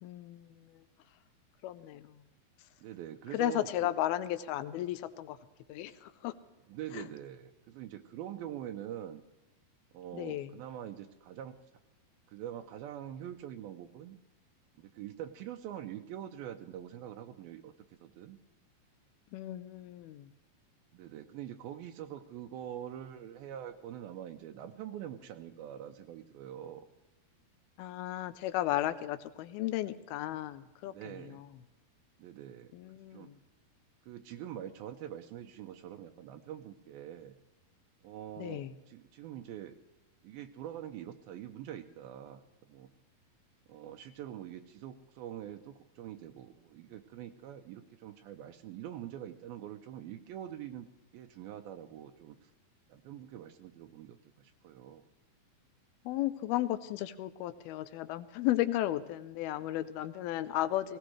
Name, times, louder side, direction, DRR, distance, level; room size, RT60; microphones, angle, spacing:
voice 1, 0.0-0.8 1.6-2.2 3.3-5.4 5.7-6.3 6.9-7.0 10.1-10.5 19.3-20.3 27.8-31.5 32.7-33.4 38.4-38.7 56.1-61.0, left 14 dB, 90° left, 12 dB, 2.6 m, -34 dB
voice 2, 2.8-3.9 6.7-9.2 9.9-11.6 12.3-14.2 14.8-18.4 20.9-26.9 30.9-31.4 32.2-32.7 33.1-33.3 34.1-37.4 38.0-39.8 40.2-42.4 42.7-42.9 43.7-52.5 52.9-55.1, right 11 dB, 85° right, 6 dB, 2.5 m, -44 dB
18.5 x 17.5 x 3.3 m, 1.1 s
omnidirectional pair, 4.3 m